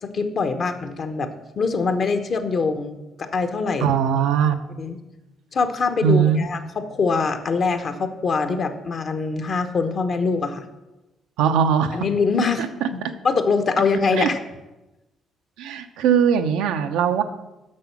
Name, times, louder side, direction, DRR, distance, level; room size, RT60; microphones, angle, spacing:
voice 1, 0.0-3.9 4.8-5.0 5.5-10.6 11.9-13.0 13.2-14.4, left 4 dB, 55° left, 8 dB, 1.0 m, -23 dB
voice 2, 3.8-4.6 6.0-6.4 11.4-12.0 14.2-14.3 15.6-17.2, right 7 dB, 85° right, 7 dB, 0.6 m, -20 dB
7.6 x 6.2 x 5.9 m, 1.0 s
supercardioid pair, 65°, 0 cm